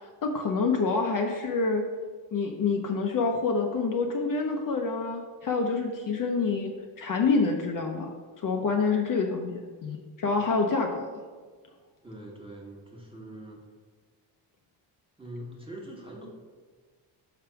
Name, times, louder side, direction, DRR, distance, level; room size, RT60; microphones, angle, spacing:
voice 1, 0.0-1.8 2.3-6.7 7.0-11.2, left 4 dB, 45° left, 2 dB, 0.7 m, -27 dB
voice 2, 12.0-13.6 15.2-16.3, right 1 dB, 10° right, -2 dB, 1.3 m, -43 dB
5.8 x 3.4 x 5.7 m, 1.5 s
cardioid pair, 110°, 48 cm